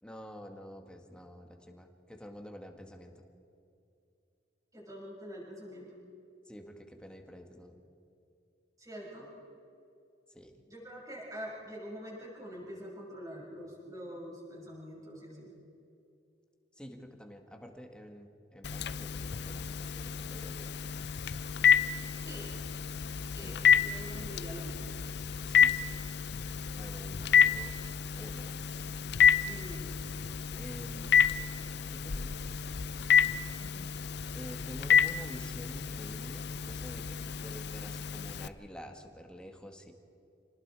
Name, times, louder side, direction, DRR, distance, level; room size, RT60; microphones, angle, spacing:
voice 1, 0.0-3.3 6.5-7.8 10.3-10.6 16.7-20.7 25.5-25.9 26.8-27.7 28.2-29.0 30.5-31.4 31.9-32.7 34.3-39.9, equal, 5° left, 3 dB, 1.9 m, -48 dB
voice 2, 4.7-6.0 8.8-9.3 10.7-15.5 22.2-22.5 23.3-24.9 27.2-27.3 29.4-30.0, equal, 20° right, -5 dB, 6.7 m, -45 dB
Telephone, 18.6-38.5, left 7 dB, 65° left, 0.6 m, -29 dB
28.5 x 19.5 x 4.9 m, 2.6 s
head